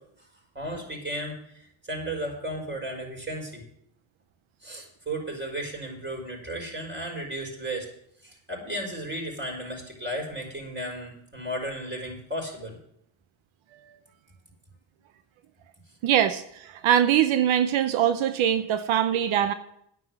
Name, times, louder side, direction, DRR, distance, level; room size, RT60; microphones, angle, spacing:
voice 1, 0.5-3.6 4.6-7.9 8.2-12.8, right 1 dB, 25° right, 0 dB, 5.7 m, -34 dB
voice 2, 16.0-19.5, right 10 dB, 90° right, 10 dB, 0.8 m, -22 dB
9.4 x 7.9 x 7.8 m, 0.73 s
cardioid pair, 65°, 46 cm